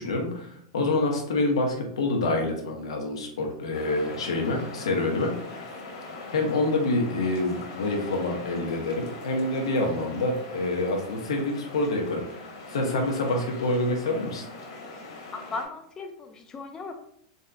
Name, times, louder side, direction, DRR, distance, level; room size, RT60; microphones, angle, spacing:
voice 1, 0.0-5.7 6.3-12.4 12.7-14.4, left 2 dB, 85° left, 2 dB, 0.9 m, -27 dB
sound 1, 3.7-15.6, left 2 dB, 65° left, 1.4 m, -41 dB
voice 2, 15.3-16.9, left 3 dB, 25° left, 4 dB, 0.5 m, -37 dB
4.0 x 3.7 x 2.3 m, 0.70 s
hypercardioid pair, 105°, 3 cm